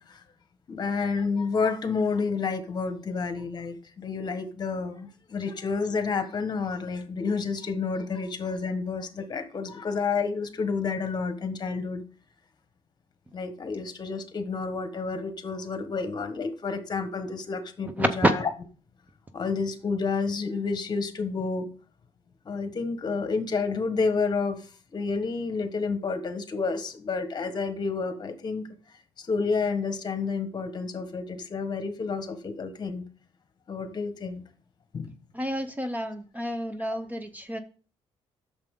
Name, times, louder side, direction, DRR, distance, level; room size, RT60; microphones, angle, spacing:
voice 1, 0.7-12.0 13.3-18.4 19.3-21.7 22.4-24.6 24.9-28.6 29.2-33.0 33.7-34.4 34.9-35.1, left 4 dB, 40° left, 9 dB, 1.3 m, -30 dB
voice 2, 17.8-18.3 35.3-37.6, right 1 dB, 15° right, 9 dB, 0.7 m, -28 dB
8.8 x 6.7 x 3.7 m, 0.39 s
cardioid pair, 120°, 11 cm